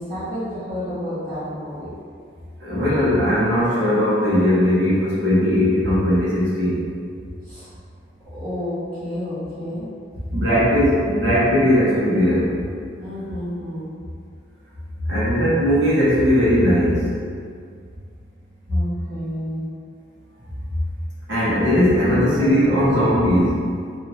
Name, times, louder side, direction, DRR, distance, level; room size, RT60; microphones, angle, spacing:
voice 1, 0.0-1.9 7.4-7.7 8.2-9.9 13.0-13.9 14.9-15.1 18.7-19.6 22.1-23.0, equal, 40° right, -16 dB, 1.1 m, -29 dB
voice 2, 2.6-6.8 10.3-12.5 15.1-17.1 21.3-23.6, equal, 65° right, -9 dB, 0.8 m, -18 dB
2.7 x 2.4 x 3.0 m, 2.1 s
head